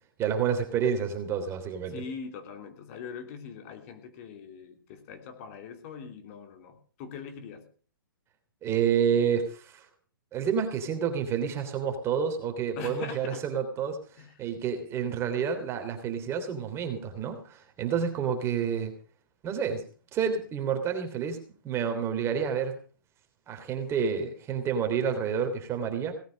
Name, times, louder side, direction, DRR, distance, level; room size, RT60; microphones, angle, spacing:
voice 1, 0.2-2.0 8.6-9.8 10.3-14.0 14.4-18.9 19.4-19.8 20.1-22.7 23.5-26.1, right 7 dB, 25° right, 6 dB, 3.2 m, -29 dB
voice 2, 1.9-7.7 12.7-13.4 14.2-14.4, left 6 dB, 40° left, 6 dB, 3.0 m, -42 dB
18.0 x 9.3 x 6.5 m, 0.42 s
hypercardioid pair, 135°, 11 cm